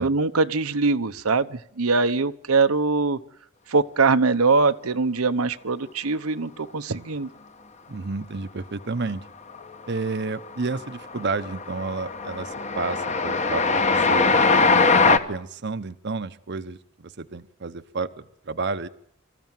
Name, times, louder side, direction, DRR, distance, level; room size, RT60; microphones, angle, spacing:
voice 1, 0.0-3.2 3.7-7.3, right 4 dB, 90° right, 9 dB, 1.0 m, -22 dB
voice 2, 7.9-9.2 9.9-14.3 15.0-18.9, right 4 dB, 55° right, 11 dB, 0.8 m, -31 dB
Train, 9.5-10.0 10.3-15.2, left 4 dB, 35° left, 1.2 m, -21 dB
24.5 x 14.0 x 9.1 m, 0.71 s
head